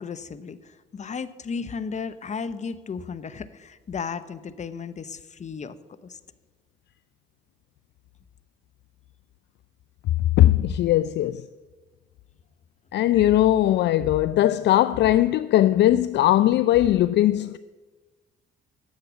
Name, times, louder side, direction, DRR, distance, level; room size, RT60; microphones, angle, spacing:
voice 1, 0.0-5.8 6.0-6.2 13.1-13.3, left 5 dB, 35° left, 0.8 m, -34 dB
voice 2, 10.2-11.5 12.9-17.6, left 13 dB, 60° left, 0.4 m, -19 dB
10.5 x 7.6 x 8.3 m
supercardioid pair, 65°, 21 cm